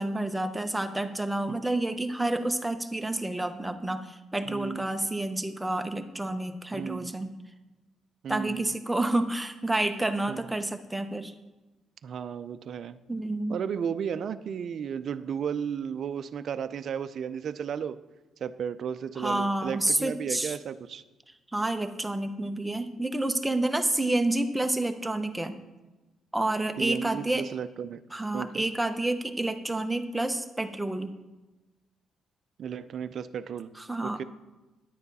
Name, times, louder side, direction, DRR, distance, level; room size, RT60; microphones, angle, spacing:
voice 1, 0.0-7.4 8.3-11.3 13.1-13.6 19.2-20.5 21.5-25.6 26.3-27.4 28.1-31.1 33.8-34.2, right 2 dB, 10° right, 7 dB, 0.9 m, -29 dB
voice 2, 4.5-4.8 6.7-7.1 8.2-8.8 10.3-10.4 12.0-13.0 13.5-18.0 18.4-21.0 26.8-28.0 28.3-28.6 32.6-33.7 34.0-34.2, right 7 dB, 60° right, 12 dB, 0.5 m, -34 dB
10.0 x 9.6 x 4.1 m, 1.1 s
cardioid pair, 90°, 0 cm